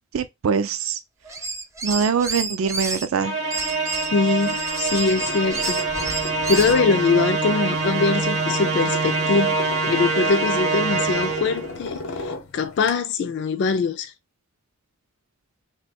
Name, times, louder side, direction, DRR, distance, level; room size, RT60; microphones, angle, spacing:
voice 1, 0.1-1.0 1.8-3.4, right 6 dB, 75° right, 0.4 m, -23 dB
sound 1, 1.2-3.0 3.5-6.8, right 3 dB, 15° right, 0.4 m, -30 dB
Musical instrument, 3.2-11.7, right 3 dB, 55° right, 0.8 m, -25 dB
voice 2, 4.1-5.8 6.1-9.6 9.9-14.1, left 4 dB, 55° left, 0.3 m, -23 dB
sound 2, 5.2-12.9, left 2 dB, 75° left, 0.8 m, -35 dB
3.0 x 2.2 x 4.2 m
head